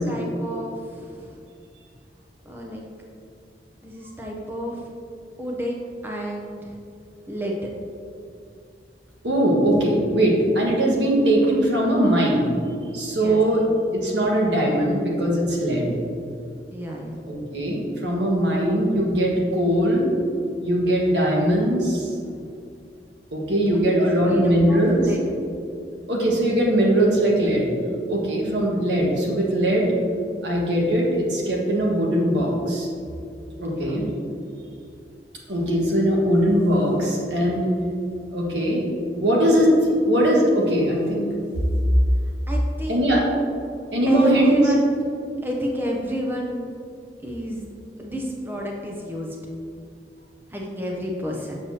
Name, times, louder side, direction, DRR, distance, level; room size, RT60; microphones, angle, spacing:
voice 1, 0.1-1.4 2.4-2.8 3.8-4.9 5.4-6.8 7.3-7.7 13.1-13.4 16.7-17.2 23.7-25.2 33.6-34.0 42.5-43.1 44.1-44.9 45.4-46.7 47.2-47.6 48.0-49.4 50.5-51.5, equal, 10° right, -1 dB, 0.6 m, -30 dB
voice 2, 9.2-12.5 12.9-13.6 13.9-15.9 17.3-20.1 20.6-22.2 23.3-25.0 26.1-27.6 28.1-29.9 30.4-32.9 33.6-34.1 35.5-37.7 38.3-38.8 39.1-39.7 40.0-41.2 41.6-41.7 42.9-43.2 43.9-44.6, right 1 dB, 90° right, -3 dB, 1.5 m, -20 dB
6.9 x 6.6 x 2.8 m, 2.4 s
head